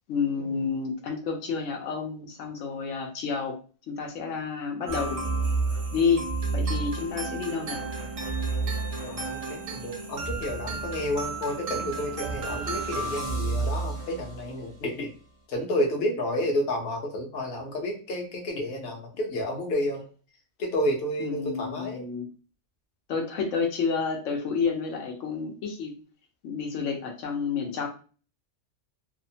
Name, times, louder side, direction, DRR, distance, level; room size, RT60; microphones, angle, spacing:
voice 1, 0.1-3.5 3.9-5.2 5.7-6.3 6.5-7.9 21.2-22.2 23.1-25.9 26.4-27.9, left 5 dB, 85° left, 2 dB, 1.0 m, -29 dB
sound 1, 4.9-14.5, right 3 dB, 45° right, 0.5 m, -31 dB
voice 2, 9.0-15.1 15.5-20.0 20.6-22.1, left 1 dB, 60° left, 1 dB, 0.8 m, -30 dB
2.8 x 2.0 x 2.6 m, 0.38 s
omnidirectional pair, 1.3 m